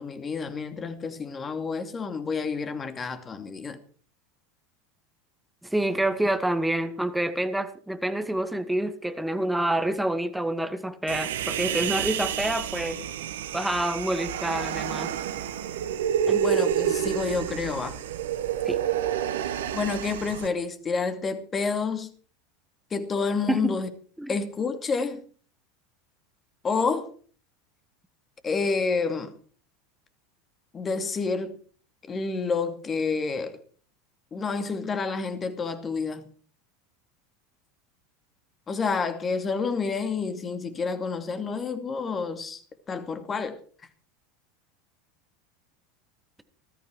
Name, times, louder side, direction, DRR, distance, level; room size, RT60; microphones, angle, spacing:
voice 1, 0.0-3.8 16.3-18.0 19.7-22.1 22.9-23.9 24.3-25.2 26.6-27.1 28.4-29.3 30.7-31.6 32.0-33.6 34.3-36.3 38.7-42.6 42.9-43.6, left 4 dB, 25° left, 2.5 m, -29 dB
voice 2, 5.6-13.0 13.5-15.1 16.3-16.4 18.7-18.8 23.5-23.7 24.2-24.4, right 1 dB, 5° right, 2.2 m, -27 dB
Human voice, 11.1-20.5, right 9 dB, 70° right, 1.2 m, -29 dB
19.5 x 13.5 x 4.6 m
figure-of-eight pair, 80°, 0 cm